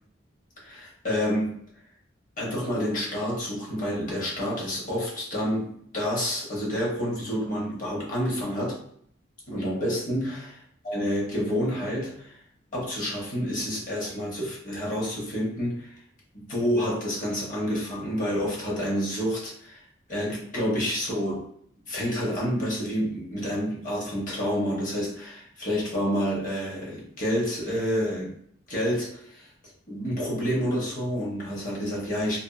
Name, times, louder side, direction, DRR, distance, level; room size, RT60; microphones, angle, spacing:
voice 1, 0.6-1.6 2.4-8.8 9.5-10.6 10.8-12.3 12.7-15.9 16.3-19.8 20.1-21.5 21.9-28.3 28.7-29.5 29.9-32.4, equal, 40° left, -4 dB, 0.9 m, -28 dB
2.5 x 2.4 x 2.4 m, 0.64 s
head